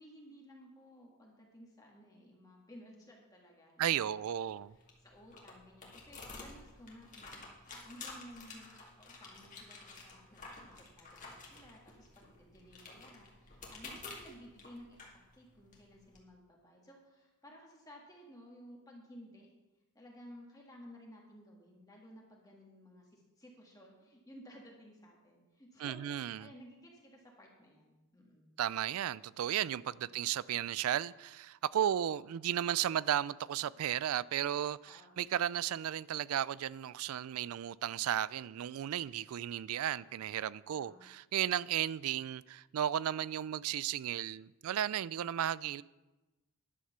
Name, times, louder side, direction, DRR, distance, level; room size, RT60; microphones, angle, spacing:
voice 1, 0.0-8.7 9.0-19.5 19.9-28.5 29.9-30.3 31.8-32.3 34.8-35.2 40.7-41.1, equal, 15° left, 1.6 m, -56 dB
voice 2, 3.8-4.7 25.8-26.5 28.6-45.8, right 10 dB, 80° right, 0.3 m, -34 dB
sound 1, 4.5-16.2, left 3 dB, 35° left, 2.1 m, -51 dB
11.0 x 6.6 x 6.7 m
head